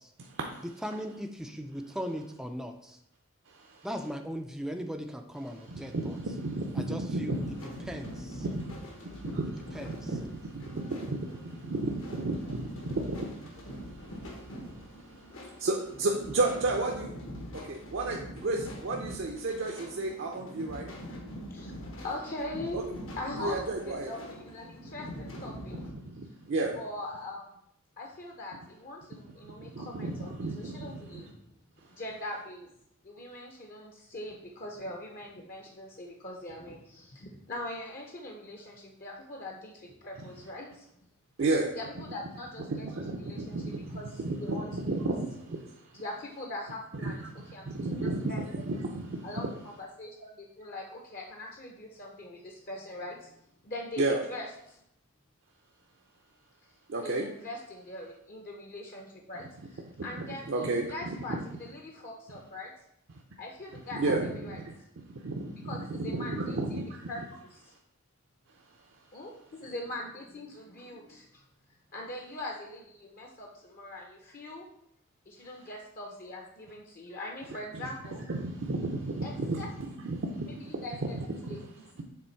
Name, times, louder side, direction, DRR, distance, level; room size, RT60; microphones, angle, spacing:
voice 1, 0.2-0.7 3.5-3.9 5.5-8.1 8.4-9.0 10.0-15.3 15.6-17.1 17.5-20.9 22.7-22.8 23.4-24.1 26.0-26.8 29.4-31.0 41.4-41.7 42.7-46.0 47.0-47.3 47.7-49.3 54.0-54.2 56.9-57.3 60.0-61.4 63.9-64.6 65.1-67.1 78.3-81.1 81.4-81.7 82.0-82.1, right 2 dB, 60° right, 1 dB, 0.6 m, -33 dB
voice 2, 0.8-3.0 3.8-6.2 6.9-7.4 7.9-8.4 9.7-9.9, equal, ahead, 5 dB, 0.3 m, -38 dB
sound 1, 7.2-25.9, equal, 70° left, 1.2 m, -43 dB
voice 3, 22.0-25.8 26.7-27.5 28.0-31.5 31.9-32.7 33.0-40.9 41.7-44.7 45.9-47.2 47.5-48.4 49.2-54.8 57.0-61.3 61.6-62.7 63.4-64.6 65.6-67.2 67.5-67.7 69.1-71.4 71.9-74.7 75.3-78.2 79.2-79.7 80.4-81.2 81.5-82.0, left 1 dB, 40° left, 0 dB, 0.7 m, -42 dB
6.8 x 3.5 x 4.5 m, 0.76 s
head